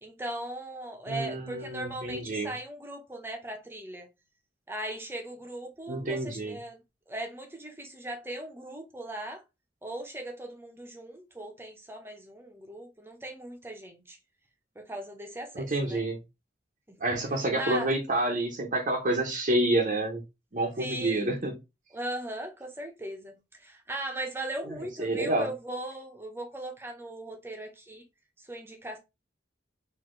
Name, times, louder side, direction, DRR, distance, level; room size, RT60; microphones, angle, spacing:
voice 1, 0.0-4.1 4.7-9.4 9.8-14.2 14.7-16.0 16.9-17.0 17.6-17.9 20.8-21.3 21.9-28.0 28.4-29.0, right 1 dB, 15° right, 0.9 m, -38 dB
voice 2, 1.1-2.5 5.9-6.6 15.5-16.2 17.0-20.2 20.5-21.5 24.7-25.5, right 1 dB, 50° right, 0.8 m, -28 dB
4.2 x 2.8 x 3.1 m
head